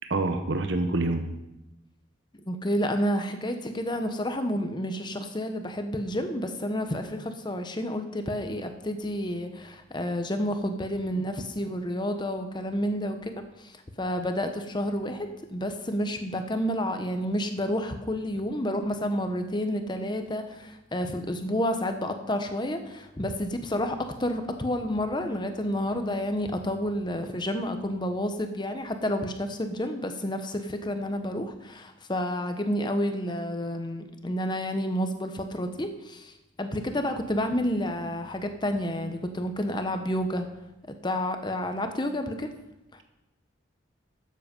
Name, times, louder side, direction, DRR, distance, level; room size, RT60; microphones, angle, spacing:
voice 1, 0.1-1.2, right 2 dB, 65° right, 6 dB, 0.9 m, -26 dB
voice 2, 2.5-13.3 13.6-36.3 36.6-40.5 40.9-42.5, equal, 20° left, 7 dB, 0.9 m, -30 dB
12.5 x 7.6 x 5.3 m, 0.92 s
head